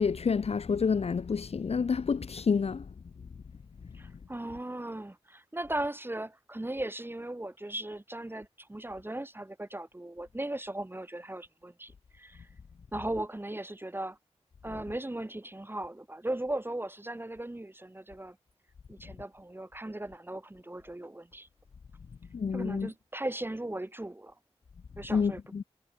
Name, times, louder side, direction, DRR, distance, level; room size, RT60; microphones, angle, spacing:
voice 1, 0.0-2.8 22.3-22.9 25.1-25.6, left 5 dB, 65° left, 0.6 m, -28 dB
voice 2, 3.9-12.5 12.9-14.2 14.6-18.4 18.9-21.5 22.5-24.3 25.0-25.6, right 1 dB, 20° right, 2.4 m, -37 dB
wide cardioid pair, 80°, 11 cm